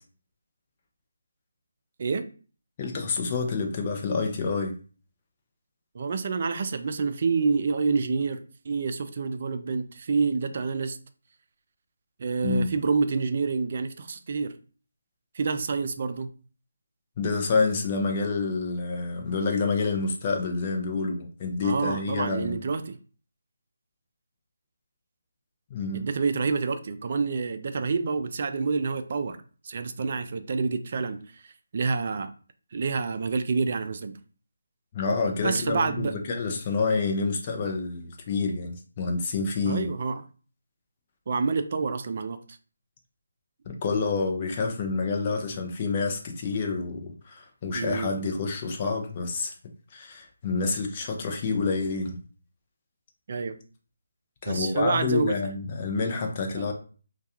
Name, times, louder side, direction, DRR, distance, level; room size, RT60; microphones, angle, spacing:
voice 1, 2.8-4.7 12.4-12.7 17.2-22.6 25.7-26.1 34.9-39.9 43.7-49.5 49.9-52.2 54.4-56.7, left 4 dB, 30° left, 2 dB, 0.5 m, -28 dB
voice 2, 5.9-11.0 12.2-14.5 15.3-16.3 21.6-23.0 25.9-29.4 29.6-32.3 32.7-34.1 35.4-36.2 39.7-40.2 41.3-42.4 47.8-48.1 53.3-53.6 54.5-55.3 56.5-56.7, right 4 dB, 45° right, 9 dB, 0.3 m, -28 dB
2.3 x 2.2 x 2.8 m, 0.39 s
figure-of-eight pair, 160°, 0 cm